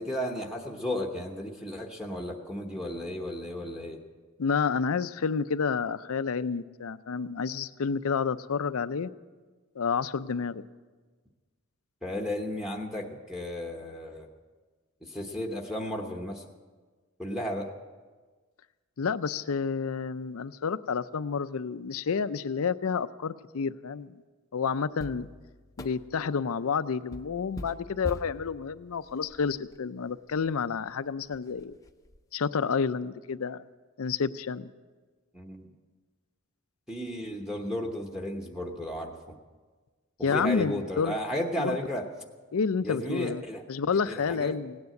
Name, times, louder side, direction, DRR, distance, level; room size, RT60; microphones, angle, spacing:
voice 1, 0.0-4.0 12.0-14.3 15.0-16.5 17.2-17.7 35.3-35.7 36.9-39.3 40.2-42.0 42.8-43.6 44.1-44.6, left 1 dB, 5° right, 1 dB, 1.0 m, -34 dB
voice 2, 4.4-9.1 9.8-10.6 19.0-24.2 24.5-25.3 25.8-31.8 32.3-33.6 34.0-34.7 40.2-41.2 41.6-41.8 42.5-43.4 43.7-44.8, left 5 dB, 75° left, 14 dB, 0.5 m, -29 dB
sound 1, 25.0-26.4 27.1-29.8 30.4-30.5 30.9-31.0 31.3-32.2, left 1 dB, 15° left, 0.6 m, -43 dB
17.0 x 9.6 x 7.7 m, 1.4 s
head